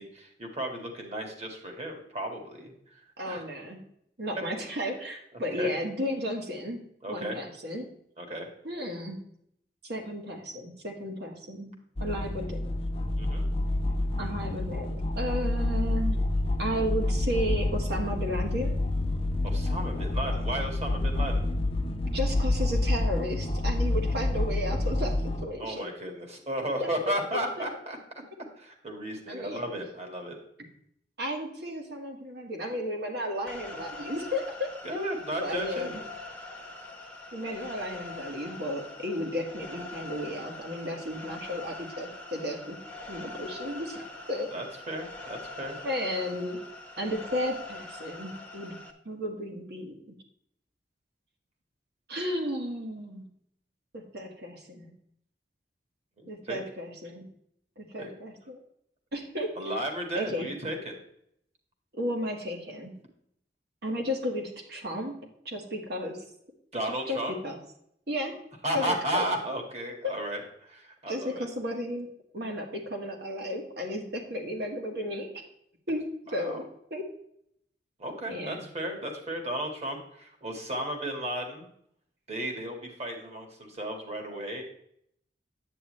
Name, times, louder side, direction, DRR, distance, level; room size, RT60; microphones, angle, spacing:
voice 1, 0.0-2.7 3.3-3.4 5.6-5.7 7.0-7.4 8.2-8.5 13.2-13.5 19.4-21.4 25.6-28.0 28.6-30.4 34.8-36.0 44.5-45.8 56.2-56.6 58.0-58.1 59.6-61.0 66.7-67.3 68.6-71.5 76.3-76.6 78.0-81.7 82.3-84.6, right 1 dB, 40° right, 3 dB, 2.0 m, -34 dB
voice 2, 3.2-3.8 4.2-6.8 7.1-7.9 8.6-9.2 9.8-11.7 12.0-12.7 14.2-16.2 16.6-18.7 22.1-25.9 26.8-26.9 27.6-27.7 29.3-29.6 31.2-34.7 35.4-36.0 37.3-42.8 43.1-44.0 44.3-44.5 45.8-46.6 47.0-48.8 49.1-50.1 52.1-53.3 53.9-54.9 56.3-57.3 57.8-58.6 59.1-59.5 60.1-60.5 61.9-63.0 63.8-66.2 67.1-67.6 68.1-68.3 68.7-69.2 70.0-70.2 71.1-72.1 72.3-75.3 75.9-76.0 76.3-76.6 76.9-77.0 78.3-78.7, equal, 65° right, 2 dB, 1.9 m, -33 dB
sound 1, 12.0-25.4, left 2 dB, 35° left, 0.7 m, -28 dB
sound 2, 33.5-48.9, left 2 dB, 5° left, 0.9 m, -43 dB
9.7 x 8.5 x 3.3 m, 0.71 s
head